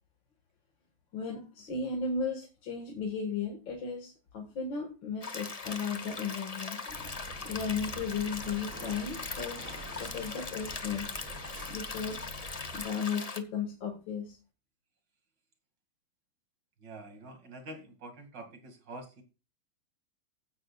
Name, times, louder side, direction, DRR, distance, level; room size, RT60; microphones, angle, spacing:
voice 1, 1.1-11.1 11.7-12.2 12.7-14.4, left 5 dB, 75° left, 1 dB, 2.5 m, -35 dB
sound 1, 5.2-13.4, left 4 dB, 30° left, 0.7 m, -40 dB
sound 2, 6.9-12.9, equal, 50° right, 5.9 m, -46 dB
voice 2, 16.8-19.2, right 2 dB, 65° right, 4 dB, 2.9 m, -46 dB
15.5 x 10.0 x 2.4 m, 0.31 s
omnidirectional pair, 2.1 m